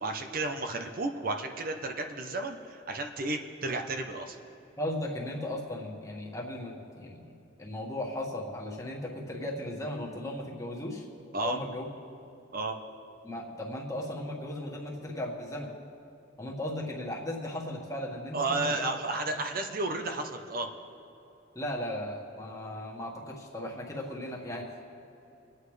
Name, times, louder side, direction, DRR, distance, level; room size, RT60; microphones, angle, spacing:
voice 1, 0.0-4.4 11.3-11.6 12.5-12.8 18.3-20.7, right 2 dB, 50° right, 5 dB, 0.8 m, -32 dB
voice 2, 4.8-7.3 7.6-11.0 11.4-11.9 13.2-15.7 16.4-18.8 19.3-19.4 21.5-24.8, left 1 dB, 15° left, -3 dB, 1.7 m, -36 dB
26.0 x 9.0 x 3.3 m, 3.0 s
head